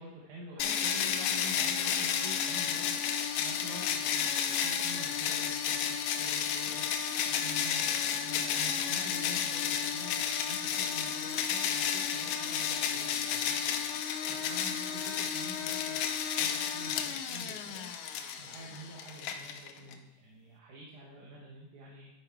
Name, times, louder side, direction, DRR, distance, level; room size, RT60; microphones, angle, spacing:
voice 1, 0.0-13.8 14.3-16.1 16.3-17.9 18.4-22.1, right 1 dB, 85° right, -4 dB, 2.6 m, -47 dB
sound 1, 0.6-19.9, left 8 dB, 80° left, 1.9 m, -32 dB
11.0 x 4.4 x 4.7 m, 1.1 s
omnidirectional pair, 3.5 m